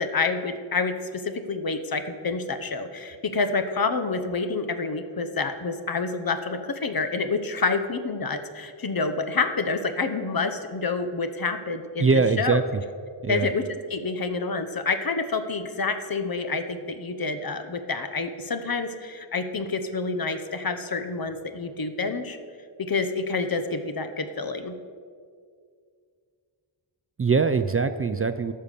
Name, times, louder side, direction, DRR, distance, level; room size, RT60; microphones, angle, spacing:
voice 1, 0.0-12.6 13.3-13.6 13.9-22.4 22.8-24.7, left 4 dB, 50° left, 9 dB, 0.9 m, -28 dB
voice 2, 12.0-12.8 13.2-13.5 27.2-28.5, right 4 dB, 30° right, 10 dB, 0.4 m, -22 dB
14.0 x 5.7 x 6.7 m, 2.1 s
wide cardioid pair, 85°, 46 cm